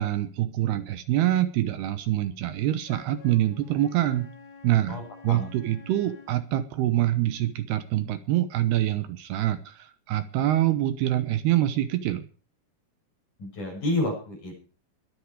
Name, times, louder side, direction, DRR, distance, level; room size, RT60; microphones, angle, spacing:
voice 1, 0.0-4.3 4.6-5.0 5.2-12.3, right 13 dB, 75° right, 11 dB, 2.8 m, -25 dB
Wind instrument woodwind instrument, 2.8-6.4, left 5 dB, 65° left, 4.1 m, -49 dB
voice 2, 4.9-5.5 13.4-14.6, left 1 dB, 45° left, 1 dB, 8.5 m, -30 dB
22.0 x 8.5 x 4.8 m, 0.38 s
omnidirectional pair, 5.0 m